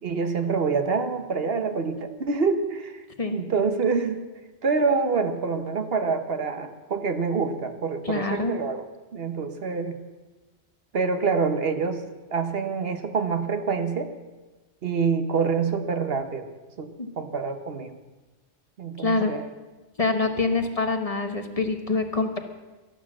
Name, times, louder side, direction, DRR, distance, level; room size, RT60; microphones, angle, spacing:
voice 1, 0.0-3.0 3.3-4.2 4.6-8.8 9.1-10.0 10.9-12.0 12.3-14.1 14.8-16.5 16.8-16.9 17.2-18.0 18.8-19.4, right 5 dB, 65° right, 8 dB, 1.3 m, -26 dB
voice 2, 8.0-8.6 17.0-17.1 19.0-19.3 20.0-22.4, left 3 dB, 35° left, 6 dB, 1.2 m, -25 dB
12.5 x 11.5 x 7.3 m, 1.2 s
omnidirectional pair, 1.1 m